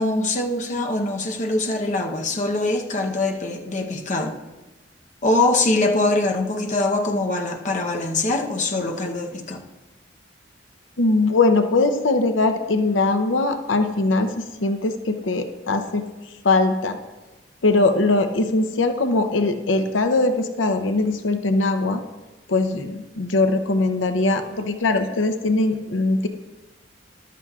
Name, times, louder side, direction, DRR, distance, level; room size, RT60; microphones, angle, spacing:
voice 1, 0.0-4.4 5.2-9.6, left 2 dB, 40° left, 3 dB, 0.8 m, -23 dB
voice 2, 11.0-17.0 17.6-22.0 22.5-26.3, left 2 dB, 85° left, 8 dB, 0.7 m, -21 dB
14.0 x 11.5 x 2.4 m, 1.1 s
head